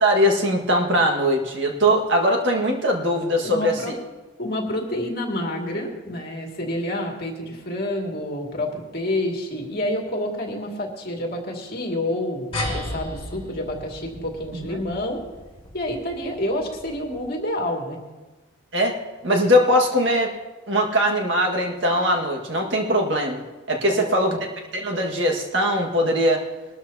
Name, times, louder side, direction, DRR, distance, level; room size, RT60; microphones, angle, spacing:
voice 1, 0.0-4.0 18.7-19.0 19.2-20.3 20.7-24.4 24.7-26.5, equal, 65° right, 2 dB, 1.8 m, -21 dB
voice 2, 3.4-3.9 4.4-15.3 15.7-18.0 23.9-24.2, left 1 dB, 50° left, 0 dB, 2.3 m, -28 dB
sound 1, 12.5-17.4, left 1 dB, 30° left, 3.4 m, -35 dB
21.0 x 13.0 x 2.8 m, 1.2 s
head